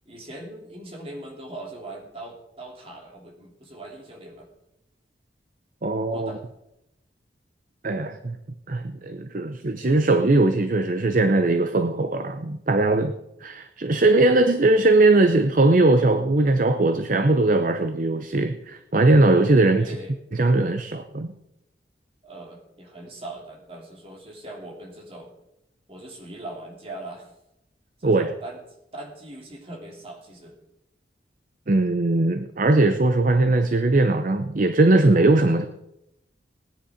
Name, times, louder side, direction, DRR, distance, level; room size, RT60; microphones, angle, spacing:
voice 1, 0.0-4.5 6.1-6.4 19.7-20.2 22.2-25.3 25.9-27.3 28.0-28.6 28.9-30.5, right 2 dB, 35° right, 0 dB, 3.0 m, -40 dB
voice 2, 5.8-6.3 7.8-8.4 8.7-13.1 13.4-19.9 20.3-21.3 28.0-28.3 31.7-35.7, right 2 dB, 50° right, 9 dB, 0.7 m, -20 dB
18.5 x 10.0 x 5.0 m, 0.86 s
head